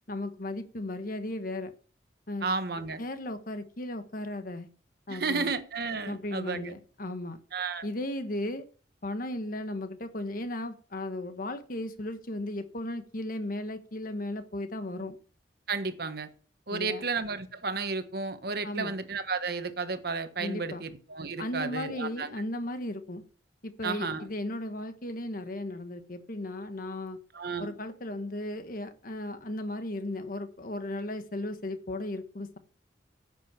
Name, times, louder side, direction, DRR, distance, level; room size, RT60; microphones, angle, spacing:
voice 1, 0.1-1.7 2.3-2.5 3.0-4.7 5.1-5.5 6.0-7.4 7.8-8.7 9.0-15.2 16.7-17.0 18.6-18.9 20.4-20.8 21.4-23.2 23.6-27.2 27.6-32.6, left 1 dB, 55° left, 1.4 m, -36 dB
voice 2, 2.4-3.0 5.1-6.7 7.5-7.9 15.7-16.3 16.7-22.4 23.8-24.3 27.3-27.7, right 4 dB, 60° right, 1.3 m, -33 dB
10.5 x 7.8 x 5.9 m
head